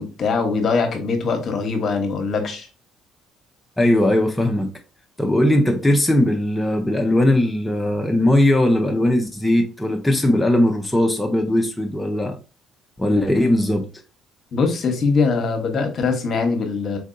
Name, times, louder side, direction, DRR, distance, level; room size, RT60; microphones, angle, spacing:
voice 1, 0.0-2.7 14.5-17.0, left 4 dB, 50° left, 1.0 m, -22 dB
voice 2, 3.8-4.7 5.2-12.4 13.0-13.9, left 1 dB, 10° left, 0.6 m, -19 dB
4.4 x 2.6 x 2.6 m
supercardioid pair, 80°, 0 cm